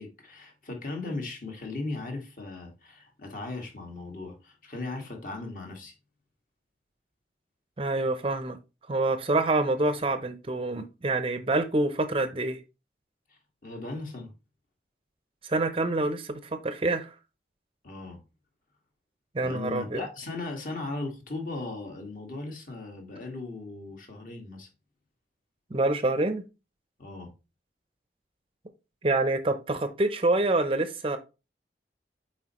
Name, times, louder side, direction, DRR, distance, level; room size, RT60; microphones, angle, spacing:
voice 1, 0.0-5.9 13.3-14.3 17.8-18.2 19.4-24.7 27.0-27.3, left 3 dB, 50° left, 1.8 m, -37 dB
voice 2, 7.8-8.6 8.9-12.6 15.4-17.1 19.3-20.1 25.7-26.4 29.0-31.2, right 2 dB, 30° right, 0.6 m, -26 dB
7.6 x 4.6 x 3.0 m
head